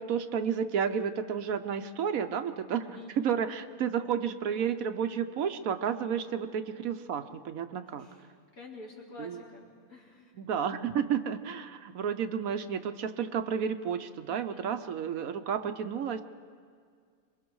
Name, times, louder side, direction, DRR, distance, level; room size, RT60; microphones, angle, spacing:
voice 1, 0.0-8.1 9.2-9.4 10.3-16.2, right 7 dB, 70° right, 9 dB, 1.2 m, -31 dB
voice 2, 8.5-10.3 14.3-14.8, left 3 dB, 70° left, -5 dB, 4.0 m, -48 dB
26.5 x 22.5 x 4.7 m, 2.1 s
omnidirectional pair, 1.6 m